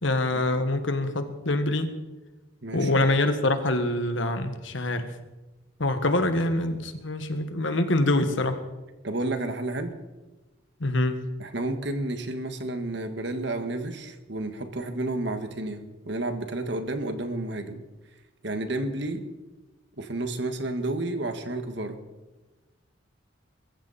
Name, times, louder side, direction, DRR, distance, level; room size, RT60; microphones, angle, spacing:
voice 1, 0.0-1.9 2.7-5.1 5.8-8.6 10.8-11.2, left 2 dB, 65° left, 8 dB, 1.6 m, -25 dB
voice 2, 2.6-3.0 9.0-9.9 11.4-17.8 18.4-19.2 20.0-22.0, right 2 dB, 55° right, 7 dB, 1.8 m, -31 dB
23.0 x 14.5 x 4.3 m, 1.1 s
head